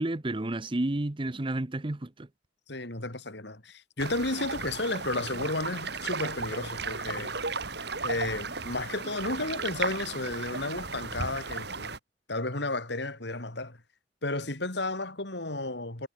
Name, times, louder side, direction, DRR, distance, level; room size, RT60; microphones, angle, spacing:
voice 1, 0.0-2.3, right 1 dB, 25° right, 0.8 m, -31 dB
voice 2, 2.7-7.6 8.0-11.9 12.3-13.8 14.2-16.1, left 2 dB, 60° left, 3.3 m, -33 dB
sound 1, 4.0-12.0, right 4 dB, 55° right, 4.2 m, -35 dB
head